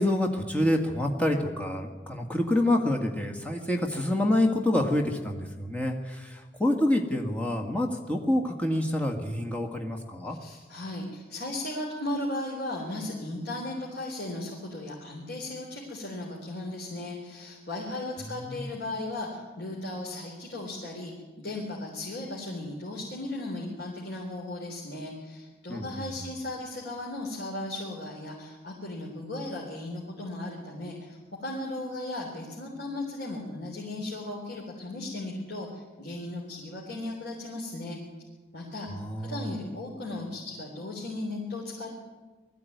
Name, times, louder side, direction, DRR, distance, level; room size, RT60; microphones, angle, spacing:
voice 1, 0.0-10.4 18.3-18.7 25.7-25.8 39.0-39.5, left 1 dB, 10° left, 1 dB, 1.7 m, -27 dB
voice 2, 10.3-38.0 38.5-38.9 39.2-41.9, left 2 dB, 75° left, -3 dB, 3.7 m, -36 dB
20.0 x 14.5 x 9.4 m, 1.3 s
head